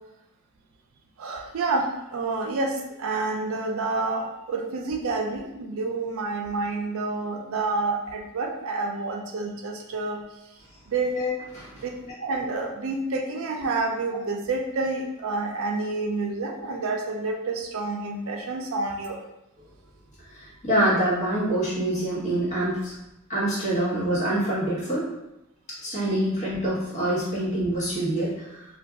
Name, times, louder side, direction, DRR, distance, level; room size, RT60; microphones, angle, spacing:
voice 1, 1.2-10.2 10.9-11.2 11.8-11.9 12.2-19.2, right 3 dB, 65° right, 2 dB, 0.4 m, -28 dB
voice 2, 11.1-11.7 20.3-22.9 23.3-25.1 25.7-28.7, right 1 dB, 35° left, -8 dB, 1.2 m, -26 dB
2.5 x 2.2 x 3.5 m, 0.90 s
head